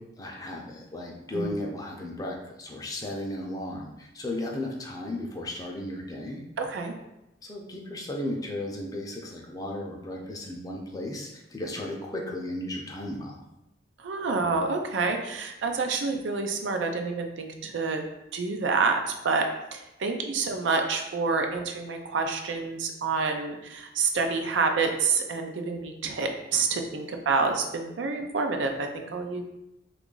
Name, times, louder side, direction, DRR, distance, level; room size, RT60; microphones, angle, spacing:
voice 1, 0.0-6.4 7.4-13.4, left 1 dB, 20° left, -1 dB, 0.5 m, -35 dB
voice 2, 6.6-6.9 14.0-18.0 18.3-19.0 19.2-19.5 19.7-29.4, right 4 dB, 90° right, 4 dB, 0.5 m, -28 dB
3.0 x 2.4 x 3.8 m, 0.90 s
head